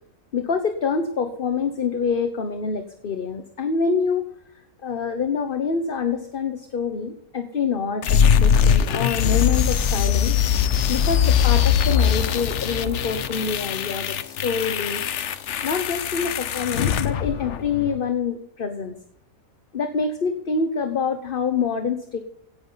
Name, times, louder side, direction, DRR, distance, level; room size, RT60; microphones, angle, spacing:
voice 1, 0.3-4.3 4.8-10.3 10.9-15.0 15.6-18.9 19.7-22.2, left 5 dB, 45° left, 7 dB, 1.1 m, -26 dB
sound 1, 8.0-18.0, left 8 dB, 65° left, 1.0 m, -21 dB
16.5 x 11.0 x 4.0 m, 0.71 s
omnidirectional pair, 1.4 m